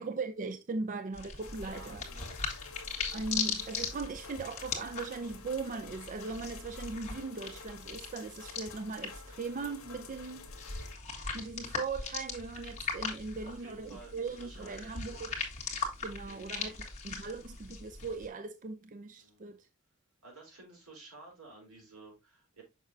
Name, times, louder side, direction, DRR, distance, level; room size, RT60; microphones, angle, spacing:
voice 1, 0.0-2.0 3.1-10.6 11.3-15.3 16.0-16.8 17.0-19.7, right 4 dB, 35° right, 0.4 m, -39 dB
sound 1, 1.1-18.3, left 5 dB, 30° left, 1.7 m, -40 dB
sound 2, 1.4-11.0, left 5 dB, 70° left, 1.4 m, -51 dB
voice 2, 1.6-2.4 13.2-15.2 16.1-16.8 19.2-19.6 20.2-22.6, right 3 dB, 85° right, 4.1 m, -53 dB
6.5 x 6.0 x 2.6 m
head